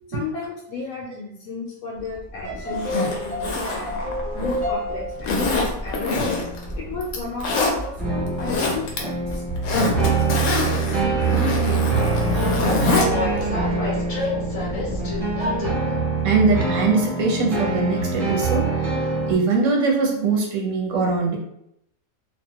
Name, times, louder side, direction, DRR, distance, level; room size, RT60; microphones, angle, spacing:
voice 1, 0.1-4.0 4.3-6.3 6.7-9.4 9.7-14.2, left 3 dB, 90° left, -3 dB, 1.1 m, -34 dB
Train, 2.0-15.7, left 1 dB, 50° left, 0.4 m, -33 dB
sound 1, 2.3-5.2 6.1-6.8 8.0-19.3, right 3 dB, 40° right, 0.9 m, -25 dB
Zipper (clothing), 2.7-4.7 5.2-6.6 7.0-7.7 8.3-9.0 9.3-13.1 13.4-13.5, left 3 dB, 65° left, 0.9 m, -25 dB
voice 2, 16.2-21.4, right 4 dB, 65° right, 0 dB, 1.0 m, -22 dB
2.7 x 2.1 x 2.7 m, 0.76 s
omnidirectional pair, 1.6 m